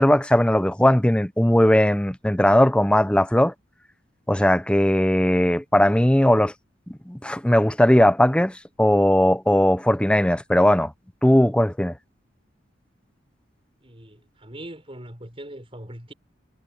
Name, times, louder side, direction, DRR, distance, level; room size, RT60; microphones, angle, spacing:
voice 1, 0.0-3.5 4.3-6.5 6.9-10.9 11.2-11.9, left 1 dB, 5° left, 0.7 m, -18 dB
voice 2, 13.8-16.1, right 1 dB, 30° right, 5.8 m, -41 dB
head